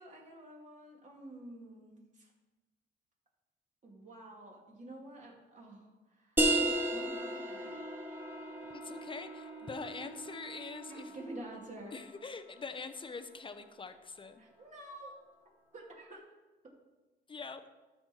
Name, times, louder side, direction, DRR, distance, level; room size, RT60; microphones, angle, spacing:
voice 1, 0.0-2.3 3.8-7.8 10.9-12.0 14.4-15.3 15.7-16.2, right 1 dB, 40° right, -2 dB, 2.5 m, -49 dB
sound 1, 6.4-11.7, right 1 dB, 10° right, 1.1 m, -35 dB
Wind instrument woodwind instrument, 7.6-11.7, right 5 dB, 70° right, 2.4 m, -49 dB
voice 2, 8.7-11.1 11.9-14.4 17.3-17.6, left 4 dB, 25° left, 9 dB, 0.7 m, -44 dB
12.5 x 4.4 x 4.4 m, 1.2 s
cardioid pair, 90°, 20 cm